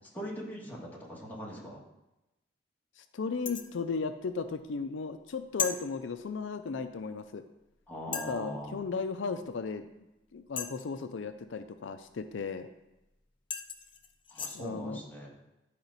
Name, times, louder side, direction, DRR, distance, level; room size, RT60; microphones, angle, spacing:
voice 1, 0.1-1.8 7.9-8.8 14.3-15.3, equal, 10° left, -5 dB, 1.7 m, -40 dB
voice 2, 3.0-7.4 8.1-9.9 10.3-12.7 14.5-15.0, left 4 dB, 80° left, 9 dB, 0.5 m, -35 dB
sound 1, 3.5-3.8 5.6-5.8 7.2-7.3 8.1-8.4 10.6-11.0 13.0-13.1 13.5-14.6, left 6 dB, 25° left, 0.5 m, -36 dB
10.5 x 5.0 x 4.0 m, 0.96 s
head